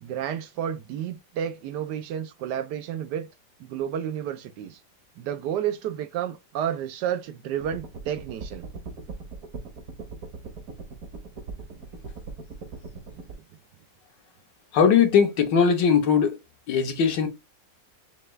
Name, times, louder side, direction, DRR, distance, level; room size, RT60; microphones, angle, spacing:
voice 1, 0.0-3.3 3.6-4.8 5.2-8.7 11.5-11.6 13.3-13.4, right 9 dB, 75° right, 1.1 m, -31 dB
sound 1, 7.6-13.3, right 4 dB, 55° right, 1.4 m, -40 dB
voice 2, 14.7-16.4 16.7-17.3, left 7 dB, 75° left, 1.6 m, -20 dB
5.7 x 2.3 x 3.1 m
omnidirectional pair, 1.9 m